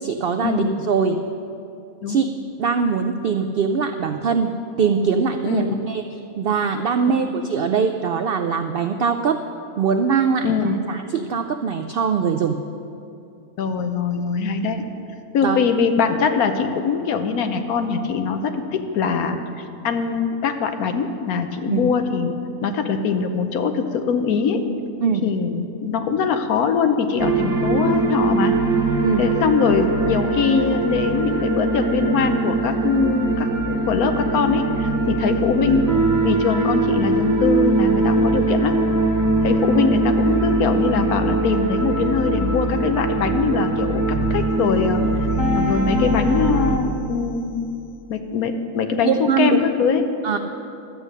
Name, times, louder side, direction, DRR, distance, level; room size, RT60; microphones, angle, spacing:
voice 1, 0.0-1.2 2.1-4.5 4.8-6.0 6.4-9.4 9.8-10.5 10.9-12.6 15.4-15.6 21.6-21.9 25.0-25.2 29.0-29.2 49.0-49.6 50.2-50.4, right 6 dB, 85° right, 7 dB, 0.5 m, -22 dB
voice 2, 5.4-5.8 10.4-10.8 13.6-14.8 15.3-22.3 22.6-24.6 25.2-28.5 29.2-35.9 36.2-38.7 39.4-44.0 44.3-45.0 45.5-47.6 48.1-50.0, left 5 dB, 85° left, 7 dB, 1.3 m, -22 dB
sound 1, 27.2-46.8, right 2 dB, 15° right, 0.7 m, -21 dB
12.0 x 8.2 x 6.4 m, 2.7 s
omnidirectional pair, 1.5 m